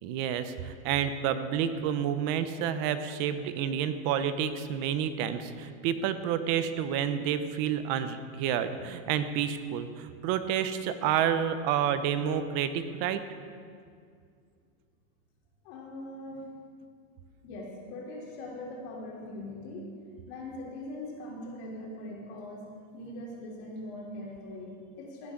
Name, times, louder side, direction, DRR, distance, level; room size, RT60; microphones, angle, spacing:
voice 1, 0.0-13.2, right 9 dB, 40° right, 11 dB, 0.8 m, -29 dB
voice 2, 15.6-16.5 17.4-19.9 20.3-25.3, left 1 dB, 50° left, -3 dB, 3.5 m, -41 dB
16.5 x 10.0 x 3.8 m, 2.2 s
supercardioid pair, 150°, 41 cm